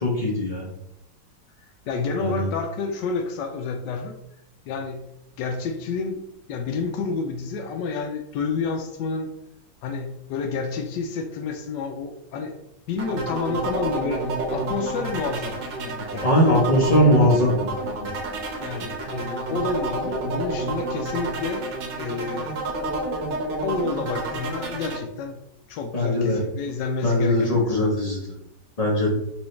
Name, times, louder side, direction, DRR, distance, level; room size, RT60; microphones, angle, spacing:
voice 1, 0.0-0.7 2.2-2.5 16.2-17.6 25.9-26.4 27.0-28.3 28.8-29.1, left 1 dB, 35° left, -2 dB, 0.6 m, -20 dB
voice 2, 1.9-4.2 4.7-5.0 5.4-6.2 6.5-9.3 9.8-12.5 12.9-16.3 18.6-21.7 21.9-22.6 23.6-25.4 25.7-27.9, left 4 dB, 80° left, 5 dB, 1.2 m, -29 dB
sound 1, 13.0-25.0, right 2 dB, 75° right, 1.6 m, -29 dB
5.9 x 2.7 x 3.2 m, 0.79 s
omnidirectional pair, 1.9 m